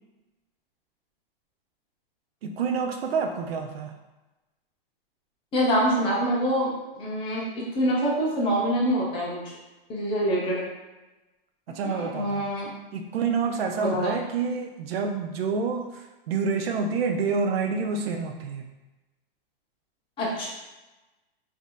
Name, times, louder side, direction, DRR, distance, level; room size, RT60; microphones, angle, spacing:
voice 1, 2.4-4.0 11.7-12.5 12.9-18.7, right 5 dB, 90° right, 4 dB, 0.5 m, -28 dB
voice 2, 5.5-9.4 9.9-10.7 11.8-12.7 13.8-14.1 20.2-20.5, equal, 15° left, -5 dB, 0.7 m, -25 dB
3.3 x 2.6 x 2.3 m, 1.1 s
hypercardioid pair, 145°, 29 cm